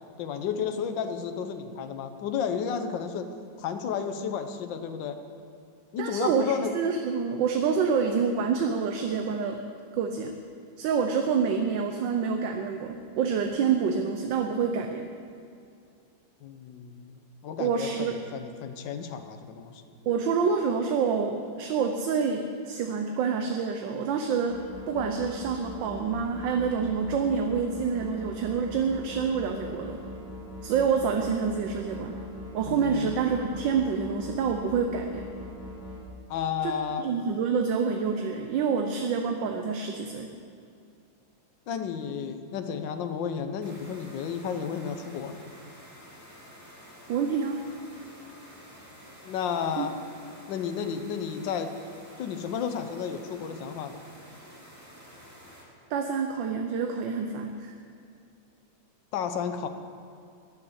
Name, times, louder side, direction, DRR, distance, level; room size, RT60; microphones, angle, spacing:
voice 1, 0.2-3.3 3.6-5.2 5.9-6.7 16.4-19.8 32.6-33.2 36.3-37.1 41.7-45.4 49.2-49.9 50.5-51.7 52.2-54.0 59.1-59.7, left 7 dB, 70° left, 8 dB, 1.5 m, -32 dB
voice 2, 6.0-6.4 6.7-9.6 9.9-10.4 10.8-15.1 17.6-18.2 20.0-24.6 24.9-30.0 30.6-32.1 32.5-35.2 36.6-36.7 37.0-40.3 47.1-47.6 49.8-49.9 55.9-57.7, right 6 dB, 75° right, 4 dB, 1.4 m, -27 dB
sound 1, 24.5-36.0, left 1 dB, 45° left, 3.5 m, -41 dB
sound 2, 43.6-55.6, equal, 10° right, 2.3 m, -50 dB
12.0 x 7.1 x 9.8 m, 2.4 s
omnidirectional pair, 2.1 m